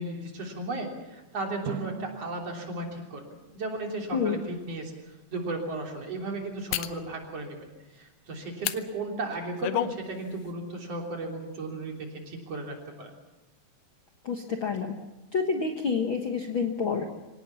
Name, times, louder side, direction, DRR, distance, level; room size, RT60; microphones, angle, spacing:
voice 1, 0.0-3.2 3.5-4.9 5.3-7.6 7.9-13.1, right 2 dB, 45° right, 1 dB, 4.3 m, -35 dB
Drum, 1.7-4.6, right 8 dB, 90° right, 2.9 m, -43 dB
sound 1, 3.9-4.0 4.6-4.8 6.7-7.0 8.6-8.8 9.3-10.0 10.3-10.5, left 12 dB, 75° left, 2.3 m, -30 dB
voice 2, 14.2-14.9 15.3-17.1, left 5 dB, 50° left, 4 dB, 1.6 m, -28 dB
25.0 x 18.0 x 7.1 m, 1.1 s
omnidirectional pair, 3.9 m